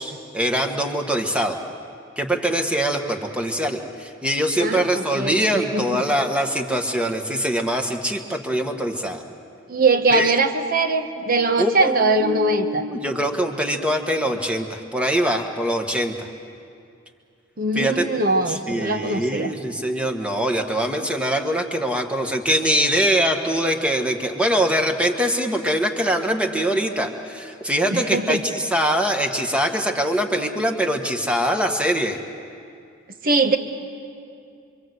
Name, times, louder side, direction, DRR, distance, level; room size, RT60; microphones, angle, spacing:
voice 1, 0.0-1.6 2.2-9.2 10.1-10.3 11.6-16.3 17.7-18.0 18.5-32.2, equal, 5° right, 4 dB, 1.4 m, -23 dB
voice 2, 4.6-6.0 9.7-12.8 17.6-19.5 27.9-28.4 33.2-33.6, right 3 dB, 45° right, 7 dB, 1.3 m, -21 dB
26.5 x 24.5 x 7.9 m, 2.4 s
head